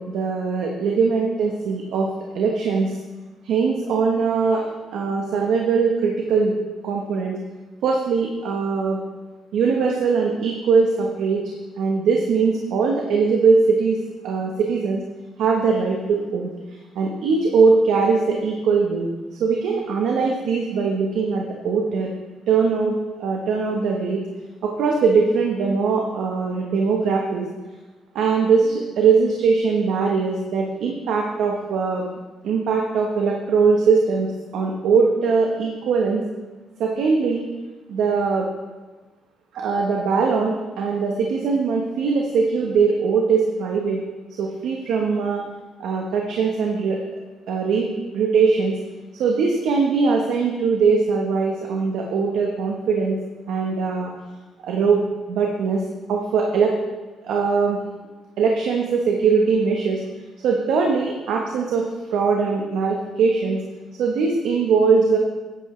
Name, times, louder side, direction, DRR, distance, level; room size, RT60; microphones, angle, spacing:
voice 1, 0.0-2.1 2.3-2.9 3.4-4.6 4.9-6.5 6.8-7.4 7.8-9.0 9.5-11.4 11.8-14.0 14.2-15.0 15.4-16.5 16.9-19.1 19.4-22.1 22.5-22.9 23.2-24.2 24.6-27.5 28.1-32.0 32.4-36.2 36.8-37.4 37.9-38.5 39.5-44.0 44.4-45.4 45.8-47.0 47.5-48.8 49.1-53.2 53.5-54.1 54.6-55.8 56.1-56.7 57.2-57.8 58.4-60.0 60.4-61.8 62.1-63.6 64.0-65.2, right 5 dB, 80° right, 0 dB, 1.2 m, -21 dB
10.5 x 9.8 x 3.3 m, 1.2 s
cardioid pair, 115°, 0 cm